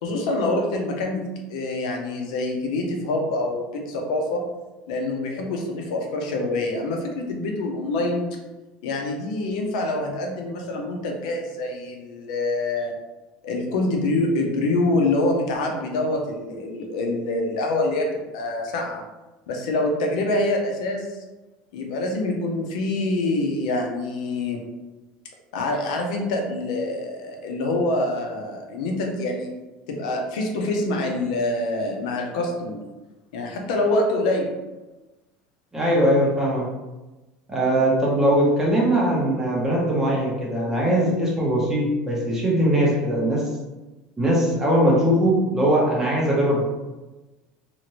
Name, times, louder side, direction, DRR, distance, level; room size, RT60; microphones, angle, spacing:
voice 1, 0.0-4.4 4.9-8.3 8.8-12.9 13.4-19.0 19.5-21.1 21.7-24.6 25.5-29.5 29.9-32.8 33.3-34.5, left 2 dB, 90° left, 1 dB, 0.6 m, -25 dB
voice 2, 35.7-36.7 37.5-43.5 44.2-46.6, right 1 dB, 10° right, -4 dB, 0.9 m, -20 dB
2.8 x 2.5 x 2.9 m, 1.1 s
supercardioid pair, 140°, 4 cm